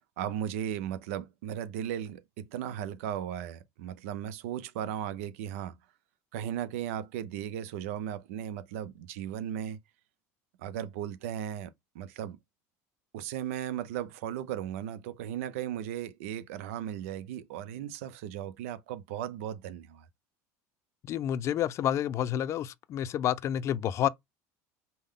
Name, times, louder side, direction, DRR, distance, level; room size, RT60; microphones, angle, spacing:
voice 1, 0.2-5.8 6.3-9.8 10.6-12.4 13.1-20.1, right 10 dB, 90° right, 0.6 m, -36 dB
voice 2, 21.1-24.1, left 10 dB, 40° left, 0.4 m, -29 dB
5.4 x 2.1 x 3.7 m
supercardioid pair, 130°, 7 cm